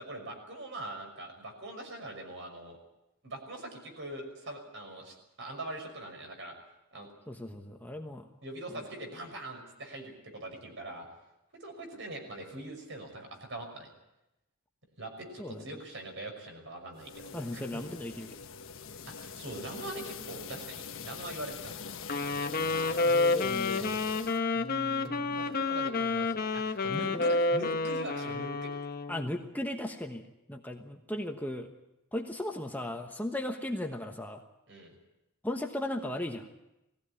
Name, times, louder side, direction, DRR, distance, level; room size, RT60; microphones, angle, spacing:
voice 1, 0.0-2.8 3.2-6.6 6.9-7.1 8.4-11.1 11.6-13.9 15.0-17.8 19.1-21.7 24.9-28.7 34.7-34.9, right 1 dB, 60° right, 4 dB, 6.0 m, -42 dB
voice 2, 7.3-8.3 8.7-8.8 15.4-15.6 17.3-18.4 23.0-24.0 24.6-25.6 27.1-27.7 29.1-31.7 32.1-34.4 35.4-36.5, left 1 dB, 10° left, 3 dB, 1.2 m, -37 dB
sound 1, 16.9-24.4, left 6 dB, 60° left, 1.3 m, -43 dB
Wind instrument woodwind instrument, 22.0-29.3, left 3 dB, 45° left, 1.2 m, -29 dB
20.0 x 16.5 x 9.8 m, 0.91 s
head